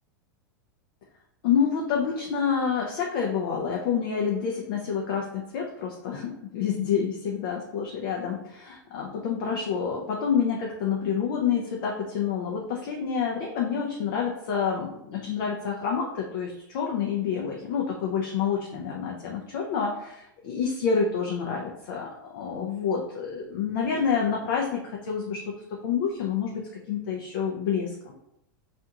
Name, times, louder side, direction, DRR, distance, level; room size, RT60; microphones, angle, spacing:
voice 1, 1.4-22.1 22.3-28.1, left 6 dB, 65° left, -1 dB, 0.5 m, -28 dB
2.5 x 2.3 x 2.8 m, 0.82 s
hypercardioid pair, 115°, 11 cm